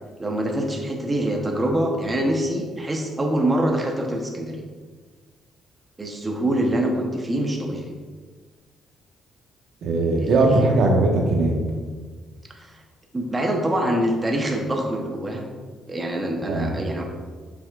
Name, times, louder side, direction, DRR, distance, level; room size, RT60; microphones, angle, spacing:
voice 1, 0.2-4.6 6.0-7.9 10.2-10.7 12.5-12.8 13.1-15.5 15.9-17.0, right 1 dB, 20° right, 1 dB, 1.0 m, -25 dB
voice 2, 9.8-11.6 16.4-16.7, right 2 dB, 75° right, 0 dB, 1.3 m, -19 dB
8.0 x 6.1 x 2.5 m, 1.5 s
cardioid pair, 90°, 0 cm